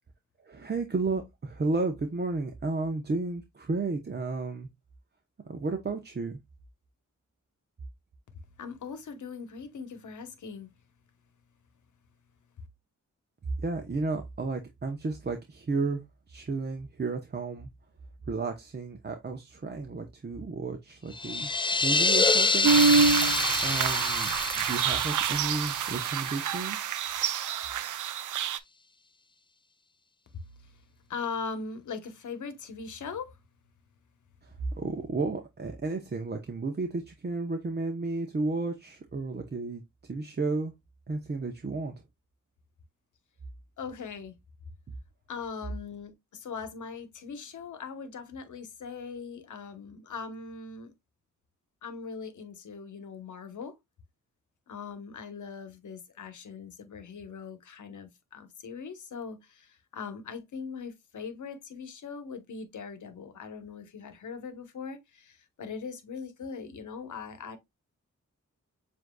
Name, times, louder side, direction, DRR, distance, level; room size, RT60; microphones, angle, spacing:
voice 1, 0.4-4.7 5.4-6.4 13.6-16.0 16.3-17.7 18.3-21.5 21.8-22.7 23.0-26.8 34.4-40.7 41.1-41.9, right 3 dB, 35° right, 0.7 m, -33 dB
voice 2, 8.6-10.7 30.6-30.7 31.1-33.4 43.8-44.3 45.3-50.9 51.8-53.8 54.7-67.6, left 5 dB, 75° left, 1.0 m, -40 dB
sound 1, 21.1-26.8, left 3 dB, 15° left, 0.4 m, -27 dB
sound 2, 22.6-28.6, right 6 dB, 80° right, 0.5 m, -26 dB
7.3 x 2.7 x 2.2 m
cardioid pair, 65°, 30 cm